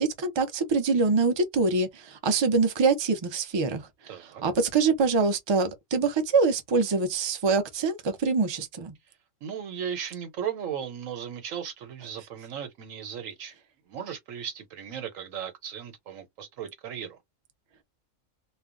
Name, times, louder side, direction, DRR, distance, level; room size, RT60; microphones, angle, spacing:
voice 1, 0.0-3.8 4.2-8.9, right 4 dB, 35° right, 0.5 m, -24 dB
voice 2, 4.1-4.4 9.4-13.5 13.9-17.2, right 8 dB, 80° right, 1.2 m, -36 dB
2.3 x 2.2 x 3.7 m
omnidirectional pair, 1.3 m